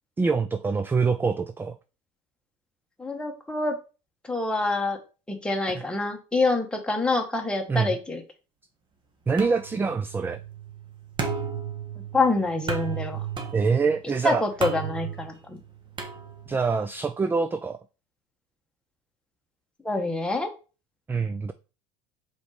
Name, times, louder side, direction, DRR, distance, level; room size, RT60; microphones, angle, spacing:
voice 1, 0.2-1.8 5.7-5.8 7.7-8.0 9.3-10.4 13.5-14.4 16.5-17.8 21.1-21.5, right 4 dB, 15° right, 0.4 m, -25 dB
voice 2, 3.0-3.8 4.2-5.0 5.3-8.2 12.1-13.2 14.2-15.6 19.8-20.5, left 2 dB, 5° left, 1.4 m, -26 dB
sound 1, 9.4-16.7, right 6 dB, 30° right, 1.4 m, -35 dB
5.0 x 4.1 x 4.9 m
supercardioid pair, 110°, 16 cm